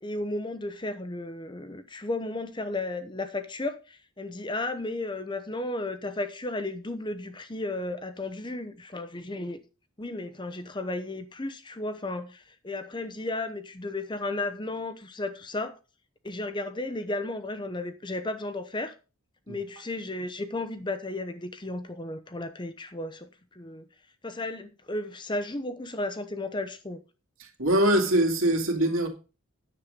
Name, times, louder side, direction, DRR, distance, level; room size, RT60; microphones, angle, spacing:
voice 1, 0.0-9.6 10.0-15.8 16.2-18.9 19.5-23.9 24.2-27.0, left 2 dB, 20° left, 0.8 m, -34 dB
voice 2, 27.4-29.1, right 1 dB, 70° right, 2.4 m, -23 dB
9.9 x 7.5 x 5.1 m
head